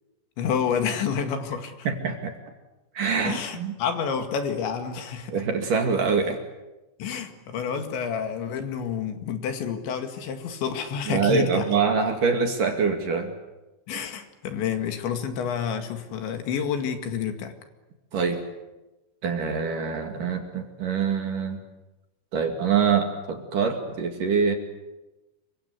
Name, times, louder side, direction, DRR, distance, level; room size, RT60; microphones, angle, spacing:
voice 1, 0.4-1.9 3.3-5.4 7.0-11.7 13.9-17.5, left 7 dB, 70° left, 6 dB, 4.2 m, -29 dB
voice 2, 1.8-2.3 2.9-3.7 5.3-6.4 11.1-13.3 18.1-18.4 19.2-21.6 22.3-24.5, right 5 dB, 50° right, 4 dB, 3.5 m, -24 dB
28.0 x 24.5 x 8.3 m, 1.0 s
omnidirectional pair, 5.6 m